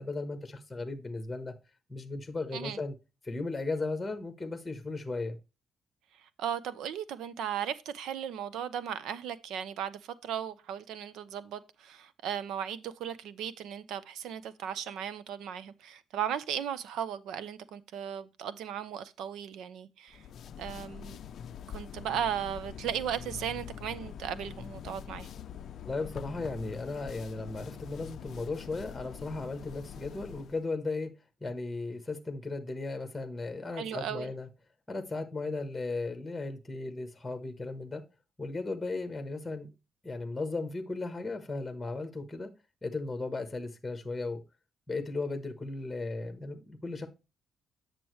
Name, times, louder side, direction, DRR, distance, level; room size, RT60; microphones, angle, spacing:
voice 1, 0.0-1.5 1.9-2.9 3.2-5.4 25.8-31.1 31.4-34.5 34.9-38.0 38.4-39.7 40.0-42.5 42.8-44.4 44.9-47.1, left 3 dB, 10° left, 1.1 m, -36 dB
voice 2, 6.2-20.2 20.6-21.2 21.7-25.3 33.8-34.3, right 9 dB, 90° right, 0.7 m, -36 dB
sound 1, 20.1-30.6, left 8 dB, 50° left, 0.4 m, -44 dB
8.7 x 6.8 x 3.1 m
cardioid pair, 170°, 0 cm